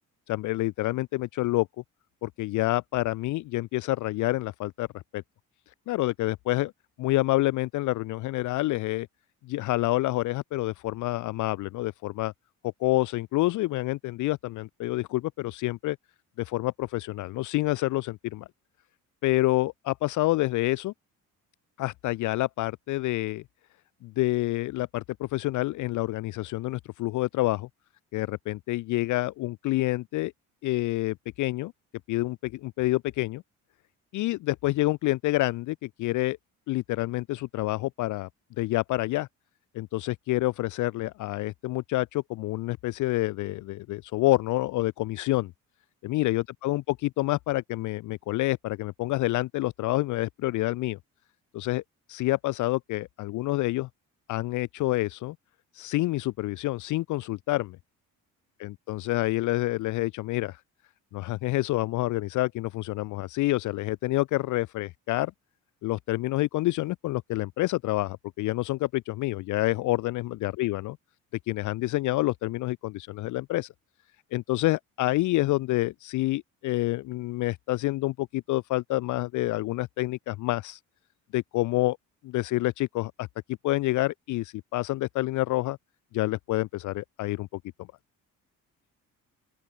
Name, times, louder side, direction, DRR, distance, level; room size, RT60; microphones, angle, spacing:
voice 1, 0.3-1.7 2.2-4.9 5.1-5.2 5.9-6.7 7.0-9.1 9.4-12.3 12.8-16.0 16.4-18.5 19.2-20.9 21.8-23.4 24.0-27.7 28.1-30.3 30.6-31.7 32.1-33.4 34.1-36.4 36.7-38.3 38.6-39.3 39.7-45.5 46.0-51.0 51.5-51.8 52.1-53.9 54.3-55.4 55.7-57.8 58.6-60.6 61.1-65.3 65.8-71.0 71.5-73.7 74.3-80.8 81.3-82.0 82.2-83.3 83.6-85.8 86.1-87.5, left 18 dB, 65° left, 0.5 m, -28 dB
open air
cardioid pair, 120°, 33 cm